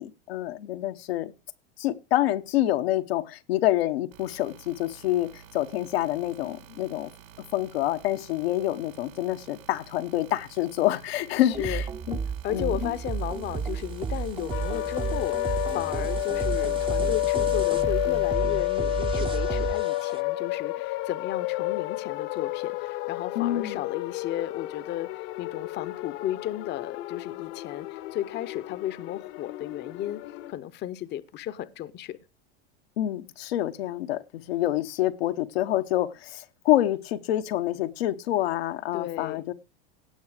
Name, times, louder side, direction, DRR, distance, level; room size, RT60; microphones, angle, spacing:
voice 1, 0.0-1.3 1.8-7.1 7.5-12.2 12.5-12.9 23.3-23.8 33.0-39.5, left 14 dB, 85° left, 1.1 m, -27 dB
sound 1, 4.1-18.3, right 9 dB, 80° right, 3.9 m, -51 dB
voice 2, 11.4-11.8 12.4-30.2 30.5-32.2 38.9-39.4, left 12 dB, 35° left, 0.7 m, -34 dB
sound 2, 11.5-20.2, right 5 dB, 15° right, 0.7 m, -32 dB
sound 3, 14.5-30.5, left 19 dB, 65° left, 1.0 m, -30 dB
17.5 x 5.9 x 4.9 m
supercardioid pair, 120°, 30 cm